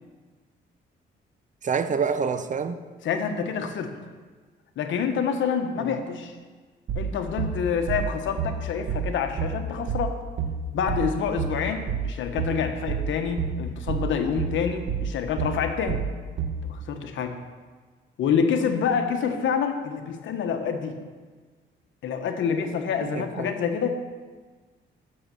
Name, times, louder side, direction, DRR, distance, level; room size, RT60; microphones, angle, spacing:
voice 1, 1.6-2.8 5.8-6.0 23.0-23.5, right 6 dB, 40° right, 10 dB, 0.7 m, -27 dB
voice 2, 3.0-3.9 4.8-6.3 6.9-10.2 10.7-16.0 16.6-17.3 18.2-21.0 22.0-23.9, left 6 dB, 75° left, 6 dB, 1.1 m, -27 dB
sound 1, 6.9-16.7, right 7 dB, 65° right, 1.3 m, -29 dB
8.8 x 6.7 x 6.7 m, 1.4 s
cardioid pair, 90°, 20 cm